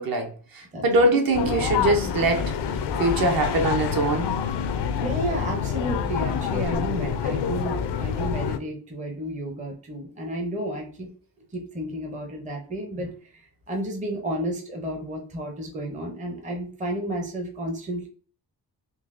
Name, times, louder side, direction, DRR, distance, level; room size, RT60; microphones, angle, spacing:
voice 1, 0.0-2.5 3.0-4.3, right 2 dB, 60° right, 0.8 m, -23 dB
sound 1, 1.3-8.6, left 7 dB, 85° left, 0.5 m, -27 dB
voice 2, 5.0-11.1 11.5-18.1, right 1 dB, 20° right, 0.6 m, -32 dB
3.8 x 3.0 x 2.5 m
wide cardioid pair, 175°, 40 cm